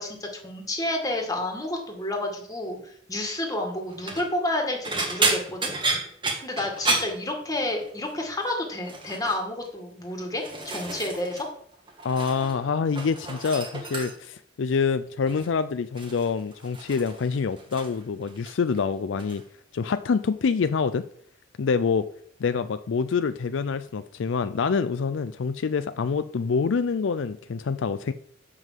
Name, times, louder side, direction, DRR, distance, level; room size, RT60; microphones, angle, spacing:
voice 1, 0.0-5.7 6.4-11.5, left 1 dB, 20° left, 2 dB, 2.0 m, -30 dB
sound 1, 3.9-4.3 4.8-7.9 8.1-8.5 8.8-9.4 10.0-11.5 11.7-12.6 12.8-14.4 15.3-15.5 16.0-18.0 18.3-18.8 19.2-19.4 20.7-20.8, right 3 dB, 25° right, 1.8 m, -31 dB
voice 2, 12.0-19.4 19.7-21.0 21.6-22.1 22.4-28.1, left 5 dB, 70° left, 12 dB, 0.4 m, -26 dB
8.1 x 5.6 x 7.4 m, 0.63 s
head